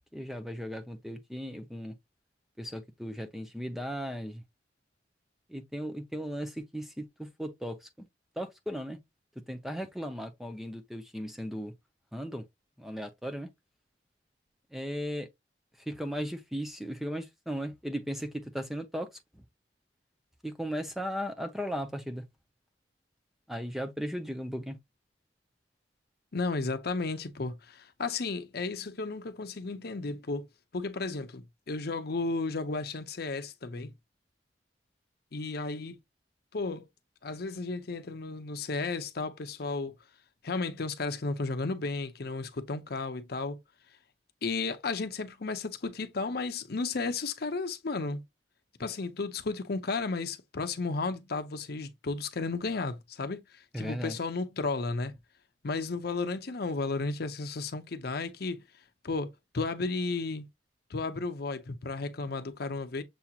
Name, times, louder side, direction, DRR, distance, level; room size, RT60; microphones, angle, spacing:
voice 1, 0.1-1.9 2.6-4.4 5.5-8.1 8.4-9.0 9.5-11.7 12.1-12.5 12.8-13.5 14.7-15.3 15.9-19.1 19.3-19.4 20.4-22.2 23.5-24.8 53.7-54.2, equal, ahead, 0.5 m, -36 dB
voice 2, 26.3-30.5 30.7-33.9 35.3-36.0 36.5-36.8 37.2-39.9 40.4-43.6 44.4-48.2 48.8-55.1 55.6-58.6 59.0-60.4 60.9-63.0, left 3 dB, 60° left, 0.7 m, -33 dB
6.9 x 2.9 x 2.3 m
head